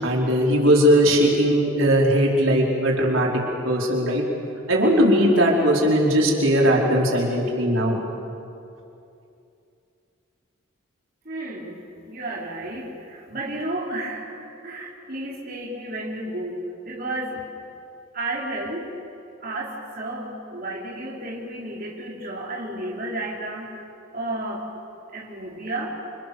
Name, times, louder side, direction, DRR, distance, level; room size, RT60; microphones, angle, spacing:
voice 1, 0.0-3.3 3.6-4.2 4.7-8.0, equal, 80° right, -2 dB, 4.7 m, -19 dB
voice 2, 11.2-16.6 16.8-17.4 18.1-18.9 19.4-23.8 24.1-24.6 25.1-25.9, right 1 dB, 45° right, -4 dB, 4.3 m, -32 dB
29.0 x 27.5 x 7.0 m, 2.6 s
head